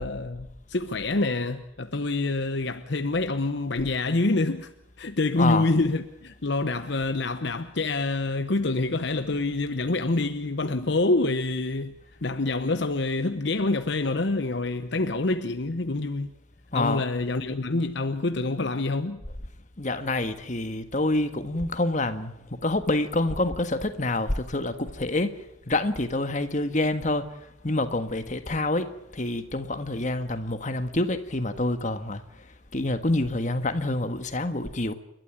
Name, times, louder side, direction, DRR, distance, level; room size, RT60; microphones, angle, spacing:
voice 1, 0.0-4.7 5.0-16.3 16.7-19.2, left 2 dB, 60° left, 0.9 m, -26 dB
voice 2, 5.4-5.7 16.7-17.0 19.8-22.3 22.6-25.3 25.7-27.3 27.6-32.2 32.7-34.9, left 2 dB, 40° left, 1.5 m, -27 dB
29.5 x 12.5 x 8.7 m
head